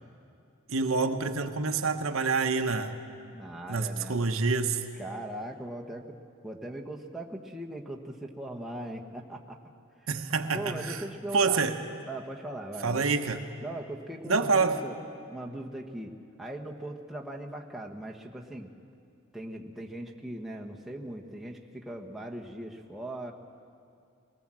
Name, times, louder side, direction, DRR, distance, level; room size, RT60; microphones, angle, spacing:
voice 1, 0.7-3.0 3.7-4.8 10.1-11.0 11.3-11.8 12.8-13.4 14.3-14.8, right 4 dB, 85° right, 6 dB, 1.1 m, -27 dB
voice 2, 3.3-4.2 5.0-6.2 6.4-9.6 10.5-11.7 12.1-13.1 13.6-15.0 15.3-18.7 19.3-23.3, right 1 dB, ahead, -1 dB, 1.3 m, -39 dB
23.0 x 18.5 x 7.6 m, 2.4 s
head